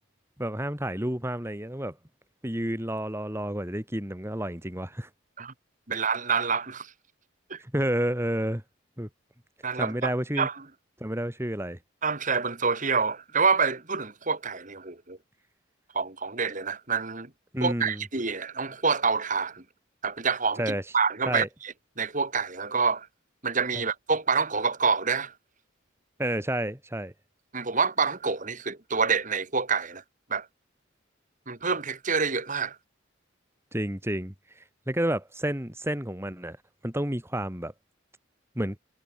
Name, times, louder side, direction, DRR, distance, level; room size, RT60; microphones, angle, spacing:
voice 1, 0.4-2.0 2.4-5.1 7.6-8.6 9.0-9.1 9.8-10.5 11.0-11.8 17.5-18.0 20.6-20.8 21.3-21.5 23.7-23.8 26.2-27.1 33.7-34.3 34.9-36.6 36.8-37.7 38.6-38.8, right 1 dB, 15° right, 2.6 m, -30 dB
voice 2, 5.9-6.9 7.5-7.6 9.6-10.5 12.0-15.2 15.9-17.3 17.6-19.6 20.0-23.1 23.4-25.3 27.5-30.0 30.3-30.5 31.5-32.8, right 5 dB, 40° right, 2.6 m, -27 dB
head